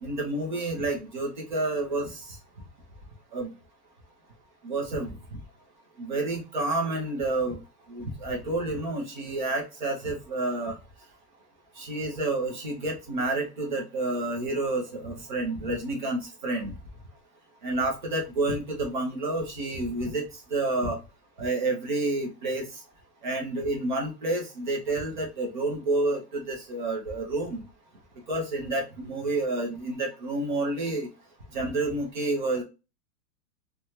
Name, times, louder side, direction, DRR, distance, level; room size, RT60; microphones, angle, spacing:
voice 1, 0.0-2.4 3.3-3.5 4.6-5.1 6.0-7.6 7.9-10.8 11.8-16.7 17.6-20.2 20.5-21.0 21.4-22.7 23.2-27.6 28.3-31.1 31.5-32.6, right 2 dB, 30° right, 1 dB, 0.5 m, -29 dB
2.6 x 2.2 x 2.9 m, 0.29 s
supercardioid pair, 175°, 49 cm